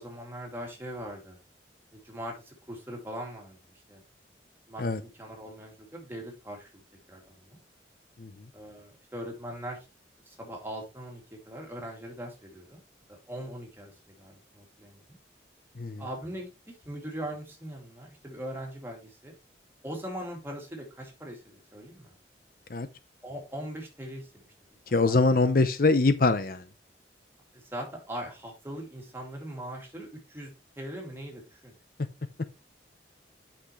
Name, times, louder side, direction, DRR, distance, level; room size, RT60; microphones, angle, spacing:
voice 1, 0.0-1.4 1.9-3.6 3.9-4.0 4.7-6.8 7.1-7.6 8.5-9.8 10.3-12.8 13.1-15.2 16.0-16.5 16.8-19.3 19.8-22.1 23.2-24.5 24.9-25.3 27.5-30.5 30.8-31.7, right 1 dB, 15° right, 2.5 m, -41 dB
voice 2, 24.9-26.6, left 3 dB, 55° left, 0.7 m, -23 dB
8.7 x 5.9 x 3.1 m
head